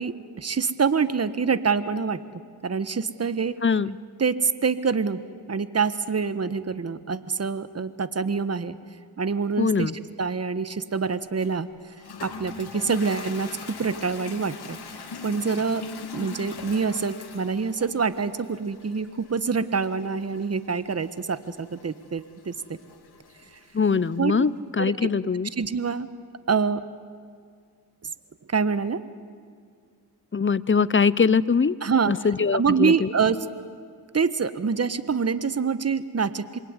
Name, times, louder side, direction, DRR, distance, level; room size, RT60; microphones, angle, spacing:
voice 1, 0.0-2.2 2.6-3.6 4.2-5.2 5.5-8.7 9.2-11.7 12.2-13.5 13.8-14.8 15.2-15.8 16.1-22.8 24.2-24.4 24.8-25.1 25.6-26.1 26.5-26.8 28.5-29.0 31.8-32.1 32.5-33.5 34.1-36.6, right 5 dB, 40° right, 14 dB, 1.4 m, -26 dB
voice 2, 3.6-4.0 9.6-9.9 23.7-25.5 30.3-31.7 32.1-33.1, left 5 dB, 30° left, 19 dB, 0.8 m, -22 dB
Toilet flush, 11.4-24.2, left 4 dB, 70° left, 2.9 m, -42 dB
27.0 x 22.0 x 9.8 m, 2.1 s
cardioid pair, 60°, 40 cm